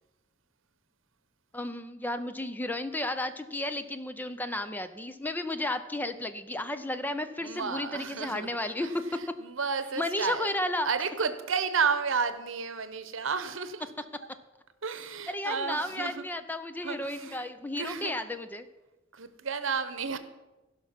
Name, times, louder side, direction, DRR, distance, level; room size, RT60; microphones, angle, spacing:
voice 1, 1.5-9.2 10.0-10.9 15.3-18.7, left 1 dB, 10° left, 10 dB, 0.5 m, -33 dB
voice 2, 7.4-8.5 8.8-10.5 10.8-13.9 14.8-16.2 16.8-17.5 17.8-18.2 19.1-20.2, right 5 dB, 70° right, 12 dB, 0.9 m, -32 dB
16.0 x 5.9 x 5.8 m, 1.1 s
head